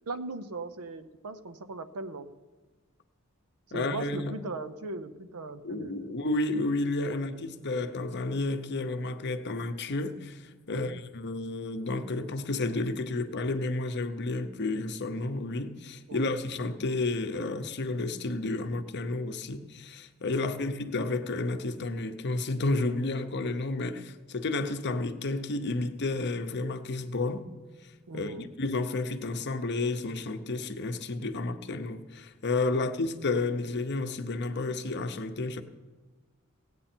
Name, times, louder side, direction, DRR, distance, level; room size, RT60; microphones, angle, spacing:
voice 1, 0.1-2.3 3.7-6.2 7.0-7.4 10.7-11.0 16.1-16.4 20.4-20.7 28.1-28.5 32.7-33.0, right 2 dB, 90° right, 0.7 m, -39 dB
voice 2, 3.7-4.3 5.6-27.5 28.1-35.6, left 2 dB, 50° left, 0.7 m, -31 dB
17.5 x 8.4 x 4.4 m
head